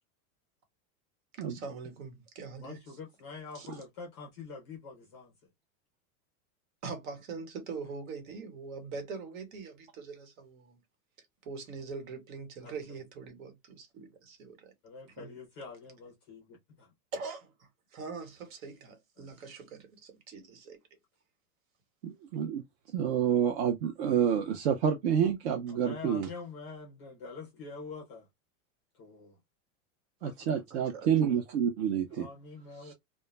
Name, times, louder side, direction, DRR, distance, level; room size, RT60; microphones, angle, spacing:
voice 1, 1.4-2.8 3.5-3.7 6.8-10.8 11.4-14.7 15.2-15.4 17.1-20.8 30.7-31.1, right 4 dB, 70° right, 1.2 m, -43 dB
voice 2, 2.6-5.3 12.6-12.7 14.8-16.9 19.2-19.3 25.7-28.3 28.9-29.4 30.2-30.6 32.1-32.9, left 4 dB, 20° left, 0.4 m, -46 dB
voice 3, 22.0-22.6 22.9-26.3 30.2-32.3 32.8-32.9, right 8 dB, 50° right, 0.4 m, -28 dB
2.2 x 2.1 x 3.1 m
supercardioid pair, 175°, 43 cm